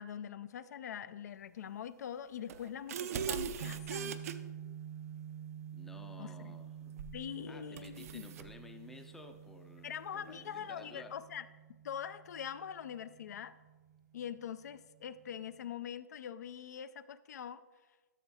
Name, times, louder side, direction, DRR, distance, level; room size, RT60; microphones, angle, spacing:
voice 1, 0.0-4.2 6.2-6.5 7.1-8.3 9.8-11.4 11.8-13.5 14.1-17.6, left 9 dB, 65° left, 14 dB, 0.4 m, -43 dB
sound 1, 2.5-4.3 7.0-7.2 7.8-8.5, right 8 dB, 55° right, 0.5 m, -39 dB
sound 2, 3.6-15.7, right 9 dB, 70° right, 1.4 m, -49 dB
voice 2, 5.7-7.0 7.5-11.2, left 2 dB, 5° left, 5 dB, 0.5 m, -54 dB
13.0 x 6.1 x 2.7 m, 1.3 s
hypercardioid pair, 155°, 10 cm